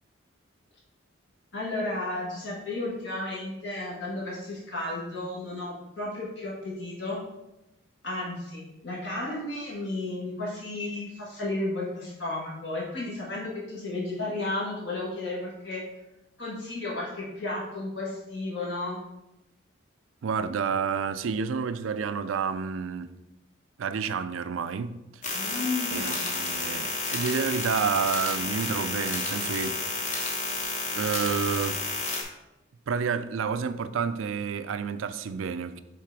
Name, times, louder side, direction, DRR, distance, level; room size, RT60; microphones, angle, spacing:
voice 1, 1.5-7.2 8.0-15.8 16.4-19.0 25.3-26.2, left 2 dB, 65° left, 1.7 m, -33 dB
voice 2, 20.2-23.2 23.8-24.9 25.9-30.3 30.9-31.9 32.9-35.8, right 6 dB, 85° right, 0.4 m, -30 dB
sound 1, 25.2-32.2, left 3 dB, 35° left, 1.0 m, -31 dB
5.8 x 3.8 x 4.8 m
head